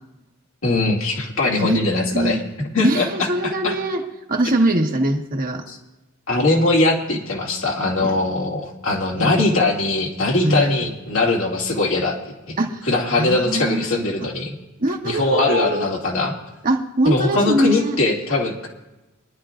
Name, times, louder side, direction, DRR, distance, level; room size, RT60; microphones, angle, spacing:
voice 1, 0.6-3.7 5.7-5.8 6.3-12.2 12.5-12.6 12.8-14.5 15.0-16.4 17.1-18.7, left 2 dB, 65° left, -1 dB, 2.3 m, -21 dB
voice 2, 2.1-2.5 2.8-4.0 4.3-5.6 8.0-8.1 9.2-9.4 10.4-10.8 12.6-12.8 13.2-14.3 14.8-16.0 16.6-18.0, right 1 dB, 40° right, 2 dB, 1.2 m, -22 dB
24.5 x 11.0 x 2.5 m, 1.0 s
head